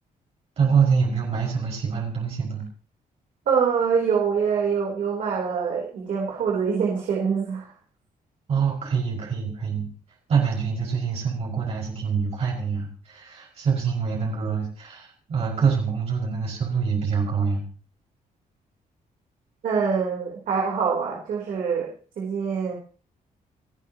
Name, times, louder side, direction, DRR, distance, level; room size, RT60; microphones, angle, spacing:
voice 1, 0.6-2.6 8.5-9.9 10.3-17.6, right 6 dB, 45° right, -4 dB, 5.5 m, -25 dB
voice 2, 3.5-7.7 19.6-21.9 22.2-22.7, right 6 dB, 60° right, -2 dB, 3.6 m, -24 dB
29.5 x 9.8 x 2.9 m, 0.40 s
cardioid pair, 170°, 15 cm